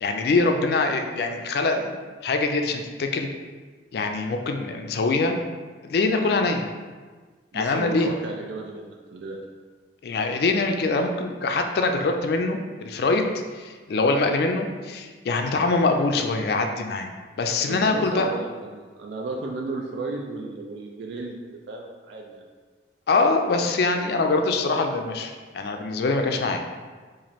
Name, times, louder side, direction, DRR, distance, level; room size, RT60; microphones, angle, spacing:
voice 1, 0.0-3.3 3.9-5.4 5.8-6.6 7.5-8.1 10.0-17.1 17.4-18.3 23.1-26.6, left 3 dB, 60° left, 5 dB, 0.3 m, -24 dB
voice 2, 7.5-9.4 17.7-22.4, right 3 dB, 75° right, 0 dB, 0.4 m, -34 dB
3.0 x 2.5 x 4.1 m, 1.4 s
head